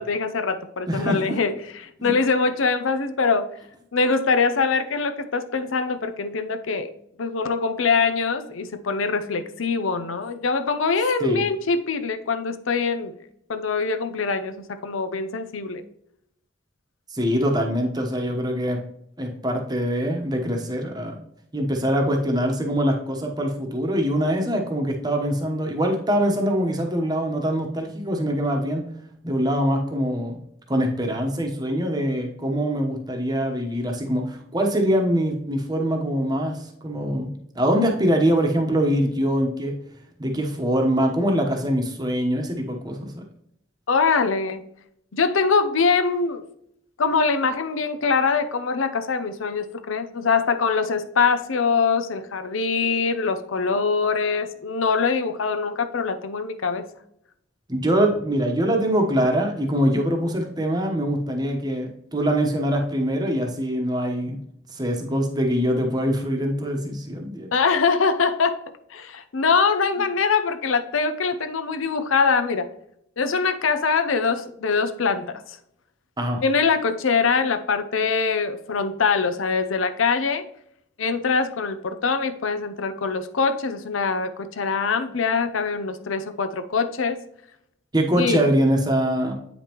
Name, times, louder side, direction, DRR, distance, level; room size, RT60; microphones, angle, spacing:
voice 1, 0.0-1.6 1.8-3.5 3.9-6.9 7.2-13.1 13.5-15.8 43.9-44.6 45.1-46.4 47.0-56.9 67.5-68.6 68.9-72.7 73.2-75.6 76.4-80.4 81.0-87.2 88.2-88.4, left 5 dB, 85° left, 10 dB, 0.7 m, -23 dB
voice 2, 0.9-1.3 2.0-2.1 11.2-11.4 17.1-18.8 19.2-21.2 21.5-28.8 29.2-30.4 30.7-39.7 40.2-43.2 57.7-64.4 64.7-67.5 76.2-76.4 87.9-89.3, equal, 20° right, 2 dB, 1.0 m, -23 dB
8.4 x 5.2 x 3.0 m, 0.75 s
head